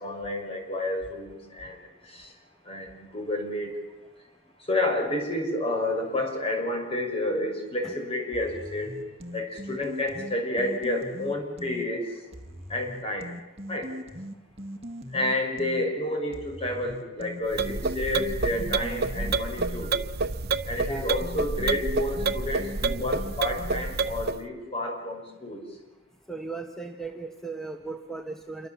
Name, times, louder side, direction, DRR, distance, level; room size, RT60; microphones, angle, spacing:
voice 1, 0.0-2.3 2.6-3.7 4.7-12.1 12.7-13.3 13.7-13.9 15.1-19.9 20.7-25.6, left 1 dB, 30° left, 3 dB, 5.7 m, -30 dB
sound 1, 8.3-11.9 12.3-15.9 16.3-24.1, equal, 30° right, 1.8 m, -40 dB
sound 2, 17.5-24.4, right 4 dB, 55° right, 0.8 m, -29 dB
voice 2, 26.3-28.7, right 3 dB, ahead, 4 dB, 1.1 m, -37 dB
27.5 x 23.5 x 7.2 m, 1.1 s
head